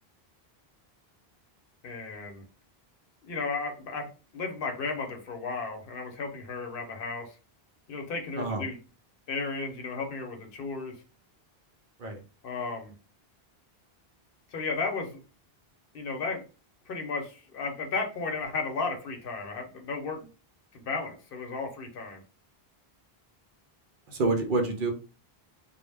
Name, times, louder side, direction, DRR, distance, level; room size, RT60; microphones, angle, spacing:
voice 1, 1.8-2.4 3.2-4.1 4.3-7.3 7.9-8.8 9.3-10.9 12.4-12.9 14.5-15.2 15.9-16.4 16.9-20.3 20.7-22.2, left 4 dB, 65° left, 3 dB, 0.8 m, -34 dB
voice 2, 24.1-24.9, right 3 dB, 60° right, 4 dB, 0.7 m, -27 dB
2.1 x 2.1 x 3.2 m, 0.34 s
omnidirectional pair, 1.0 m